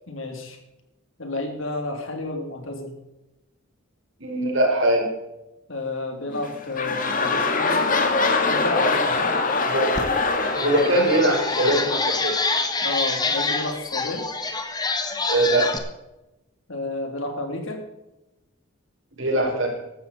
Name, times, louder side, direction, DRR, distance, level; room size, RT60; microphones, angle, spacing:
voice 1, 0.1-0.6 1.2-2.9 5.7-7.9 8.4-9.4 12.8-14.3 16.7-17.8, left 2 dB, 70° left, 3 dB, 3.2 m, -31 dB
voice 2, 4.2-5.1 9.7-10.0 10.6-12.3 15.3-15.8 19.2-19.8, right 1 dB, 65° right, 1 dB, 4.8 m, -21 dB
sound 1, 6.3-12.7 13.3-13.4, left 3 dB, 40° left, 1.9 m, -24 dB
sound 2, 9.9-10.0 10.4-15.8, left 3 dB, 20° left, 1.4 m, -26 dB
15.5 x 12.5 x 4.3 m, 0.96 s
head